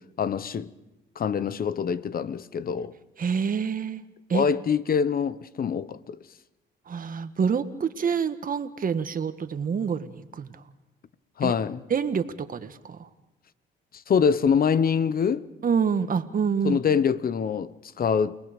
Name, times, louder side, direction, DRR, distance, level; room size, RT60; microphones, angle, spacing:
voice 1, 0.2-0.7 1.2-2.9 4.3-6.2 11.4-11.8 13.9-15.5 16.6-18.4, left 6 dB, 50° left, 0.9 m, -25 dB
voice 2, 3.2-4.0 4.3-4.5 6.9-10.6 11.4-11.5 11.9-13.1 15.6-16.8, right 6 dB, 45° right, 1.5 m, -27 dB
29.5 x 20.0 x 5.2 m
cardioid pair, 90°, 20 cm